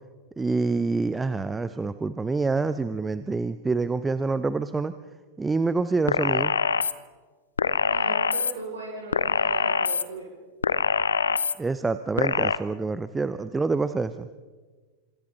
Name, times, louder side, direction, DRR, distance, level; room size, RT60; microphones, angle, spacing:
voice 1, 0.4-4.9 5.4-6.6 11.6-14.3, right 3 dB, 10° right, 12 dB, 0.8 m, -26 dB
sound 1, 6.1-6.9 7.6-8.5 9.1-10.0 10.6-11.5 12.2-12.6, left 6 dB, 70° left, 0.8 m, -24 dB
voice 2, 7.8-10.3, right 3 dB, 60° right, -3 dB, 6.3 m, -37 dB
29.5 x 26.5 x 4.1 m, 1.4 s
figure-of-eight pair, 90°, 0 cm